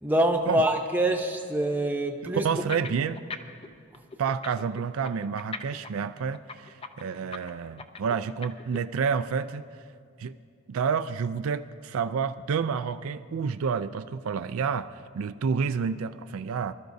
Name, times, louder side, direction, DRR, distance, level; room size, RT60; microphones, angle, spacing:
voice 1, 0.0-2.4, right 1 dB, 10° right, 3 dB, 0.8 m, -25 dB
voice 2, 2.2-3.2 4.2-9.7 10.2-10.3 10.7-16.7, right 6 dB, 75° right, 11 dB, 0.4 m, -29 dB
sound 1, 2.5-3.7 3.9-8.8, left 4 dB, 25° left, 0.5 m, -39 dB
25.0 x 13.0 x 2.7 m, 2.2 s
head